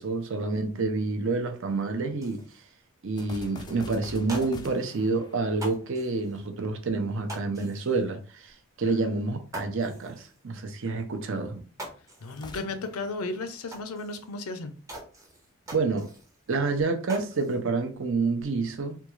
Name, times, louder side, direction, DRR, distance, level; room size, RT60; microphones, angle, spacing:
voice 1, 0.0-2.4 3.0-11.6 15.7-16.1 16.5-19.0, right 3 dB, 60° right, 0.6 m, -28 dB
sound 1, 2.2-2.6 3.2-3.3 3.6-3.7 4.1-5.1 5.5-6.4 7.3-8.1 8.5-8.6 9.0-9.1 9.5-10.4 11.2-11.3 11.6-12.6 13.0-13.1 13.7-14.4 14.9-16.4 16.7-17.6 18.0-18.6, right 1 dB, 15° right, 0.6 m, -44 dB
sound 2, 3.2-6.6 12.3-14.4, left 2 dB, 20° left, 0.3 m, -46 dB
voice 2, 12.2-14.7, left 3 dB, 80° left, 0.5 m, -34 dB
3.5 x 2.3 x 3.0 m
head